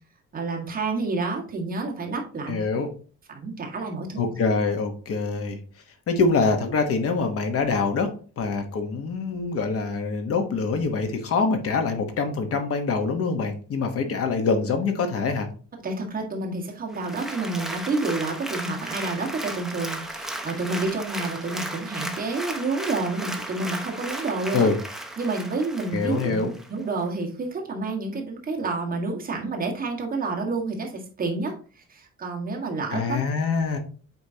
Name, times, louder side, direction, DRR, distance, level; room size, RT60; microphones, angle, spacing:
voice 1, 0.3-2.6 3.3-4.3 15.8-24.7 25.2-33.2, right 3 dB, 30° right, 0 dB, 1.6 m, -29 dB
voice 2, 2.5-2.9 4.2-5.6 6.1-15.5 24.5-24.8 25.9-26.5 32.9-33.8, left 4 dB, 50° left, 6 dB, 1.1 m, -25 dB
Applause, 16.9-26.7 27.1-27.2, right 1 dB, ahead, 0.6 m, -35 dB
8.2 x 4.7 x 2.8 m, 0.38 s
cardioid pair, 170°, 29 cm